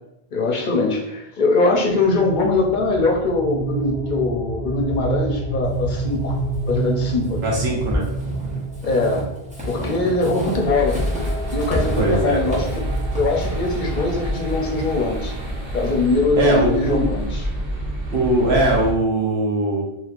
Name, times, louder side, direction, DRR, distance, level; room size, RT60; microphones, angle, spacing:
voice 1, 0.3-6.4 6.7-7.5 8.8-9.3 9.7-11.0 11.5-12.9 13.2-15.3 15.7-17.4, left 3 dB, 60° left, 0 dB, 0.6 m, -22 dB
sound 1, 1.7-16.6, right 3 dB, 45° right, 0.7 m, -30 dB
Walk footsteps / Squeak, 5.6-15.2, left 1 dB, 10° right, 0.7 m, -31 dB
voice 2, 7.4-8.0 12.0-12.4 16.4-17.0 18.1-19.8, right 1 dB, 85° right, -3 dB, 1.1 m, -20 dB
sound 2, 10.6-18.9, right 1 dB, 65° right, 1.0 m, -28 dB
3.1 x 2.8 x 2.4 m, 0.82 s
omnidirectional pair, 1.0 m